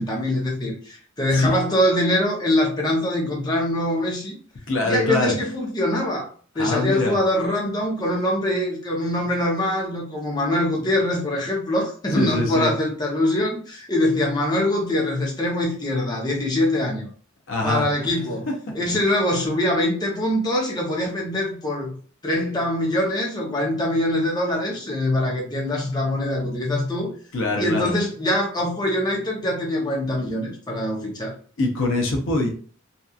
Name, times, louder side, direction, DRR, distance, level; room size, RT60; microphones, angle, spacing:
voice 1, 0.0-4.4 4.8-6.3 6.6-17.1 17.6-18.5 18.7-21.9 22.2-27.1 27.6-31.3, left 1 dB, 20° left, -2 dB, 0.7 m, -23 dB
voice 2, 4.7-5.4 6.6-7.2 12.1-12.7 17.5-17.8 18.8-19.0 27.3-27.9 31.6-32.5, left 2 dB, 65° left, 1 dB, 0.6 m, -23 dB
2.8 x 2.4 x 2.3 m, 0.43 s
head